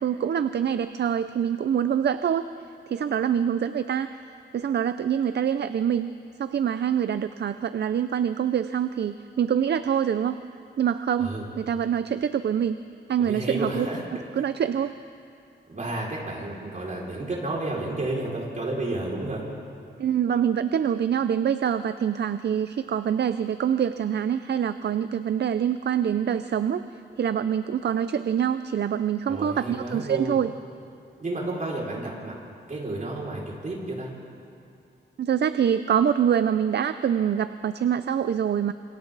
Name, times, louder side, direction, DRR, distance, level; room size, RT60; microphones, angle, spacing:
voice 1, 0.0-2.4 2.9-4.2 4.5-6.1 6.4-10.4 10.8-12.8 13.1-13.9 14.4-14.9 20.0-26.8 27.2-30.5 35.2-38.7, right 8 dB, 65° right, 11 dB, 0.6 m, -25 dB
voice 2, 13.3-14.0 15.7-19.4 29.3-30.4 31.2-32.3 32.7-34.1, right 2 dB, 40° right, -4 dB, 5.6 m, -31 dB
28.5 x 26.5 x 4.1 m, 2.5 s
wide cardioid pair, 100°, 19 cm